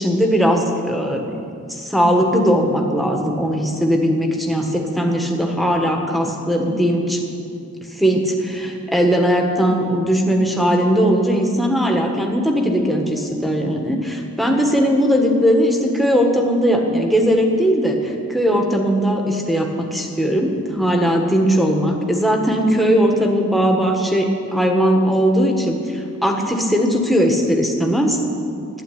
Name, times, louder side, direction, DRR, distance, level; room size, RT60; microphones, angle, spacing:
voice 1, 0.0-1.4 1.7-7.2 8.0-28.2, equal, ahead, 1 dB, 1.5 m, -19 dB
12.0 x 9.5 x 9.4 m, 2.5 s
head